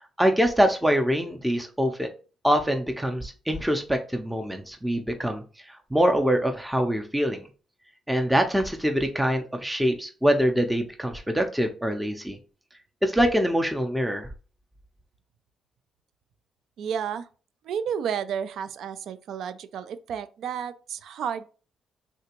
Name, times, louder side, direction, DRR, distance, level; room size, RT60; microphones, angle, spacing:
voice 1, 0.2-2.1 2.4-5.4 5.9-7.4 8.1-12.4 13.0-14.3, equal, 5° right, 0.5 m, -24 dB
voice 2, 16.8-17.3 17.6-21.5, right 8 dB, 70° right, 0.3 m, -31 dB
3.3 x 2.8 x 2.9 m
cardioid pair, 90°, 0 cm